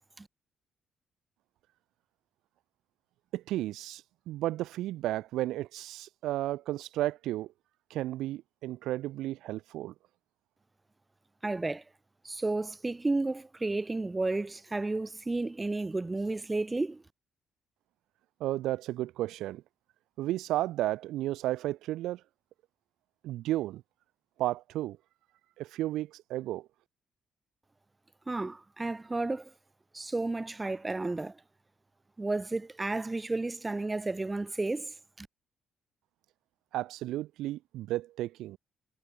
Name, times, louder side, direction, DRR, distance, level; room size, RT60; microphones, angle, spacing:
voice 1, 3.3-7.5 7.9-9.9 18.4-19.6 20.2-22.2 23.2-23.8 24.4-25.0 25.6-26.7 36.7-38.6, right 15 dB, 90° right, 2.3 m, -33 dB
voice 2, 11.4-11.8 12.2-17.0 28.3-29.5 29.9-31.4 32.2-35.3, right 2 dB, 20° right, 3.0 m, -32 dB
cardioid pair, 90°, 0 cm